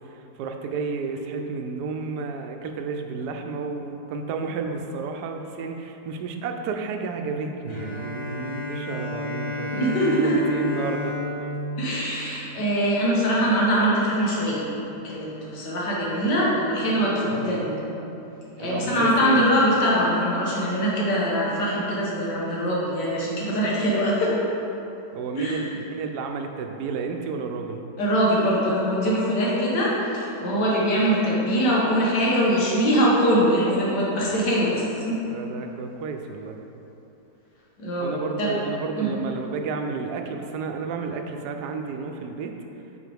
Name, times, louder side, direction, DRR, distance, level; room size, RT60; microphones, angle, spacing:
voice 1, 0.1-11.1 11.4-11.5 17.3-17.6 18.6-19.4 25.1-27.8 35.3-36.6 38.0-42.5, right 4 dB, 75° right, 4 dB, 1.2 m, -31 dB
Bowed string instrument, 7.7-13.2, left 2 dB, 20° left, 1.0 m, -33 dB
voice 2, 9.7-10.3 11.8-14.6 15.0-17.8 18.6-24.3 25.4-25.6 28.0-35.2 37.8-38.1 38.4-38.5 39.0-39.1, equal, 80° left, -6 dB, 1.9 m, -22 dB
8.9 x 5.1 x 3.4 m, 2.9 s
omnidirectional pair, 1.8 m